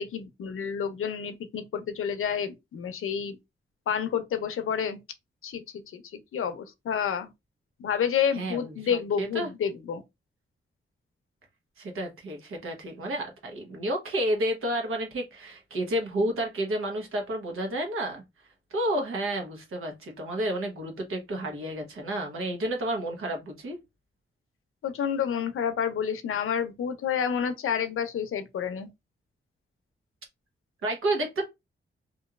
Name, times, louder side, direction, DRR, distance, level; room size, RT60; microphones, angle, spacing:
voice 1, 0.0-3.4 3.9-5.0 5.4-5.6 5.9-7.3 7.8-10.0 24.8-28.9, left 7 dB, 85° left, 0.6 m, -29 dB
voice 2, 8.3-8.8 9.2-9.5 11.8-18.2 18.7-23.8 30.8-31.4, right 1 dB, 90° right, 1.0 m, -30 dB
2.9 x 2.6 x 2.4 m
wide cardioid pair, 175°, 21 cm